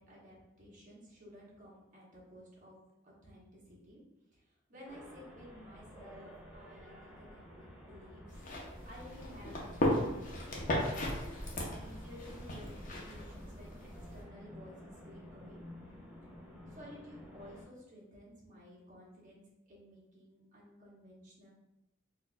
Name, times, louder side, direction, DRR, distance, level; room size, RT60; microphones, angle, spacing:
voice 1, 0.0-2.8 3.0-4.0 4.3-4.4 4.7-8.2 8.8-10.2 10.9-15.6 16.7-21.5, equal, 40° right, -5 dB, 1.1 m, -54 dB
sound 1, 4.8-17.6, left 1 dB, 5° right, 0.8 m, -52 dB
sound 2, 8.3-14.2, left 1 dB, 40° left, 0.7 m, -36 dB
4.2 x 2.5 x 2.2 m, 0.94 s
head